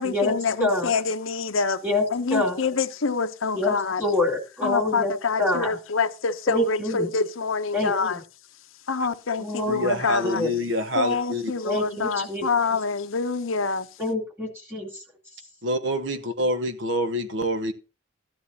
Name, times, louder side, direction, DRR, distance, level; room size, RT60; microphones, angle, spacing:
voice 1, 0.0-1.8 2.1-4.0 4.6-8.2 8.9-10.4 10.9-13.9, left 5 dB, 85° left, 0.8 m, -26 dB
voice 2, 0.6-0.9 1.8-2.0 2.3-2.6 3.5-5.1 5.4-5.7 6.5-7.1 7.7-7.9 9.4-10.5 11.6-12.5 14.0-15.0, left 2 dB, 10° right, 2.6 m, -26 dB
voice 3, 9.7-11.4 15.6-17.7, equal, 65° right, 1.0 m, -26 dB
14.0 x 10.5 x 2.8 m
head